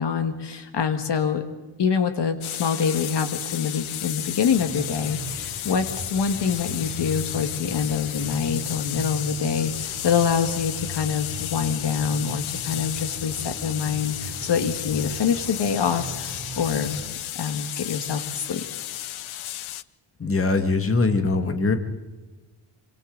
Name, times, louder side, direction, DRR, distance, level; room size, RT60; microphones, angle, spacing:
voice 1, 0.0-1.4 1.8-17.0 17.4-18.6, left 6 dB, 60° left, 7 dB, 1.8 m, -25 dB
sound 1, 2.4-19.8, left 13 dB, 80° left, 0.8 m, -33 dB
sound 2, 4.4-17.1, right 2 dB, 35° right, 3.9 m, -38 dB
voice 2, 20.2-21.7, left 3 dB, 25° left, 6 dB, 2.0 m, -22 dB
27.0 x 26.0 x 4.0 m, 1.2 s
cardioid pair, 125°, 48 cm